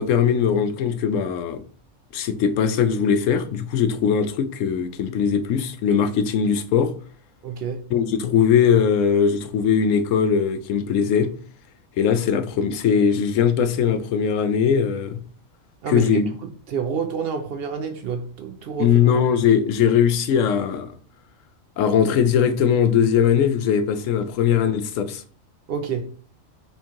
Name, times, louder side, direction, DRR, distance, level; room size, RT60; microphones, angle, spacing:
voice 1, 0.0-1.6 2.1-6.9 7.9-11.3 12.0-15.2 15.9-16.3 18.8-20.9 21.8-25.2, left 7 dB, 75° left, 0.9 m, -20 dB
voice 2, 7.4-7.9 15.8-16.3 16.7-19.1 25.7-26.1, right 6 dB, 60° right, 0.6 m, -28 dB
4.4 x 2.9 x 3.6 m
omnidirectional pair, 1.4 m